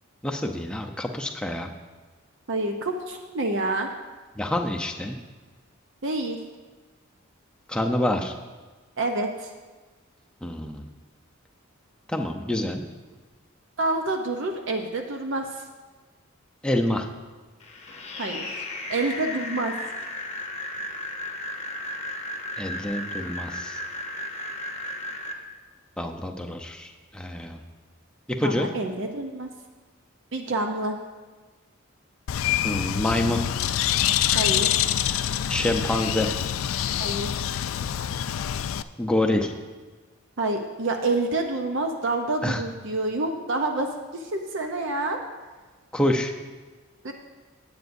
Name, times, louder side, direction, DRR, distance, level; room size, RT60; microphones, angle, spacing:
voice 1, 0.2-1.7 4.4-5.2 7.7-8.3 10.4-10.9 12.1-12.8 16.6-17.1 22.6-23.8 26.0-27.6 28.3-28.7 32.6-33.4 35.5-36.3 39.0-39.5 42.4-42.6 45.9-46.3, left 1 dB, 5° left, 2 dB, 0.6 m, -26 dB
voice 2, 2.5-3.9 6.0-6.4 9.0-9.5 13.8-15.6 18.2-18.5 18.9-19.7 28.4-29.5 30.3-30.9 34.3-34.8 37.0-37.5 40.4-45.2 47.0-47.1, right 2 dB, 60° right, 4 dB, 0.7 m, -28 dB
sound 1, 17.6-25.3, left 1 dB, 30° left, 0.9 m, -34 dB
Bird, 32.3-38.8, left 11 dB, 70° left, 0.3 m, -26 dB
17.0 x 8.1 x 2.6 m, 1.3 s
head